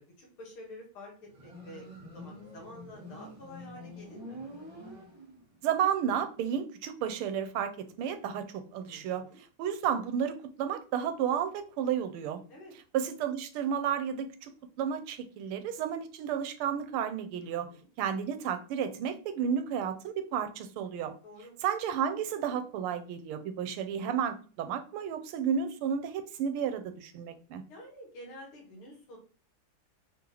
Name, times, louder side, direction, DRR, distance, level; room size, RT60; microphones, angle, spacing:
voice 1, 0.0-1.8 2.1-4.4 8.8-9.4 12.5-12.7 17.4-17.9 21.2-21.5 27.7-29.2, left 1 dB, 75° left, -1 dB, 2.4 m, -49 dB
Motorcycle, 1.3-5.6, left 1 dB, 25° right, 1.8 m, -47 dB
voice 2, 5.6-9.2 9.6-12.4 12.9-14.5 14.8-17.7 18.0-21.1 21.6-27.6, right 8 dB, 80° right, 9 dB, 1.5 m, -32 dB
4.4 x 3.8 x 3.0 m, 0.39 s
omnidirectional pair, 2.4 m